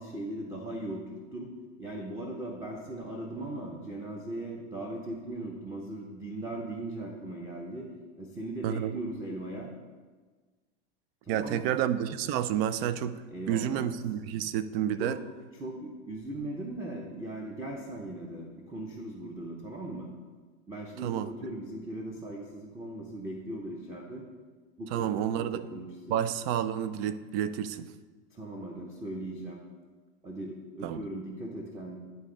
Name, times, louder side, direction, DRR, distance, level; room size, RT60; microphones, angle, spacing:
voice 1, 0.0-1.5 1.8-7.9 8.2-9.7 11.2-11.8 13.3-13.9 15.0-15.2 15.5-20.1 20.7-24.2 24.8-26.2 28.3-29.6 30.2-32.0, right 1 dB, 10° right, -2 dB, 0.6 m, -39 dB
voice 2, 8.6-8.9 11.3-15.2 21.0-21.3 24.9-25.6 26.1-27.9 30.8-31.0, right 10 dB, 55° right, 13 dB, 0.5 m, -30 dB
10.5 x 3.8 x 3.8 m, 1.4 s
supercardioid pair, 130°, 36 cm